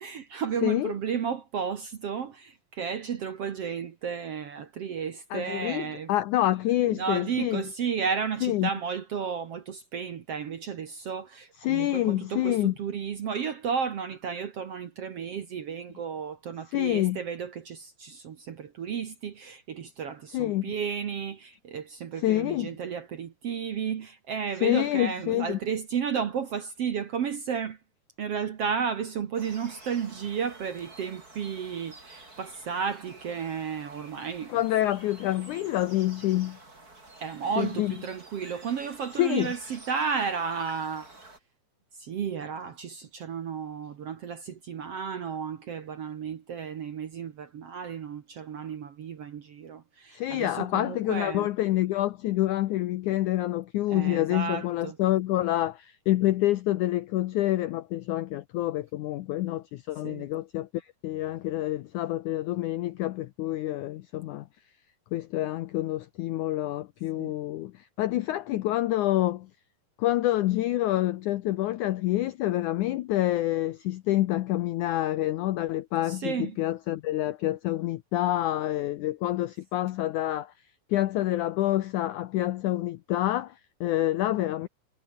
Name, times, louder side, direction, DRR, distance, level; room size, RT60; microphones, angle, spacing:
voice 1, 0.0-6.1 6.9-27.8 28.2-34.5 37.2-41.1 42.0-51.5 53.9-55.0 60.0-60.3 67.2-67.3 76.1-76.6, right 7 dB, 55° right, 1.8 m, -33 dB
voice 2, 0.6-0.9 5.3-7.6 8.4-8.7 11.6-12.7 16.7-17.2 20.3-20.7 22.2-22.8 24.6-25.6 34.5-36.6 37.6-38.0 39.2-39.5 50.1-64.5 65.1-69.5 70.0-80.5 80.9-84.7, left 15 dB, 80° left, 1.8 m, -27 dB
sound 1, 29.4-41.4, right 2 dB, 20° right, 6.3 m, -50 dB
omnidirectional pair, 4.4 m